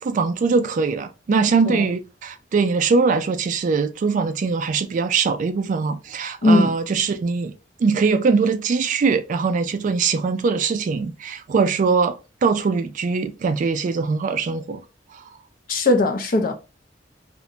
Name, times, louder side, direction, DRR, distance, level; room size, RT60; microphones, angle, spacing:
voice 1, 0.0-7.5 7.8-14.8 15.1-15.2, right 5 dB, 45° right, 0.3 m, -22 dB
voice 2, 6.4-6.7 15.7-16.5, left 2 dB, 50° left, 0.5 m, -18 dB
2.5 x 2.1 x 2.7 m
head